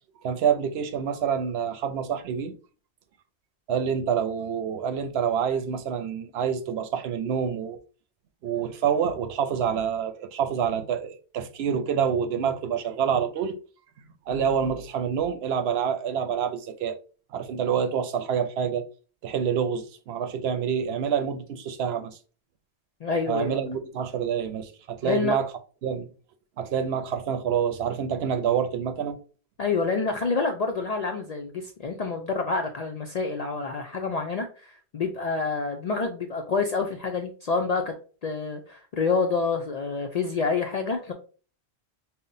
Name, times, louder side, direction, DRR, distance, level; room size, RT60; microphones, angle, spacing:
voice 1, 0.2-2.5 3.7-7.8 8.4-13.5 14.3-17.0 17.3-18.8 19.2-22.2 23.3-25.5 25.8-26.1 26.6-29.2, right 7 dB, 75° right, 0.8 m, -27 dB
voice 2, 23.0-23.6 25.0-25.4 29.6-37.9 38.2-41.1, left 4 dB, 55° left, 0.4 m, -27 dB
5.5 x 2.1 x 2.6 m
omnidirectional pair, 1.1 m